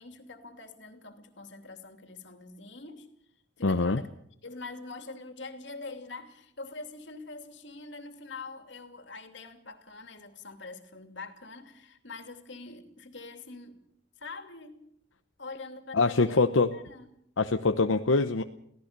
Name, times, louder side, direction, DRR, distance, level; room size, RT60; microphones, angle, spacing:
voice 1, 0.0-3.1 3.6-4.1 4.4-13.8 14.2-14.9 15.4-16.4 16.7-17.2, left 3 dB, 65° left, 7 dB, 2.8 m, -44 dB
voice 2, 3.6-4.0 15.9-16.7 17.4-18.4, left 3 dB, 85° left, 7 dB, 0.9 m, -24 dB
24.0 x 17.0 x 6.8 m, 0.70 s
head